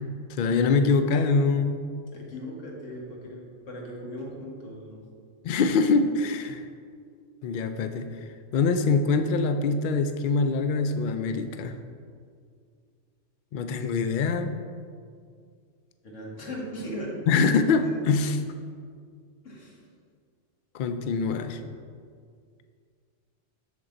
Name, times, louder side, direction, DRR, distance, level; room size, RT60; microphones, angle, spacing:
voice 1, 0.3-1.8 5.4-6.6 7.4-8.1 8.5-11.8 13.5-14.5 17.3-18.4 20.7-21.6, left 4 dB, 60° left, 8 dB, 0.5 m, -24 dB
voice 2, 2.1-5.1 16.0-17.2 17.5-17.6 17.8-18.0 19.4-19.8, equal, 80° left, -2 dB, 1.7 m, -38 dB
7.0 x 6.8 x 3.9 m, 2.1 s
omnidirectional pair, 1.3 m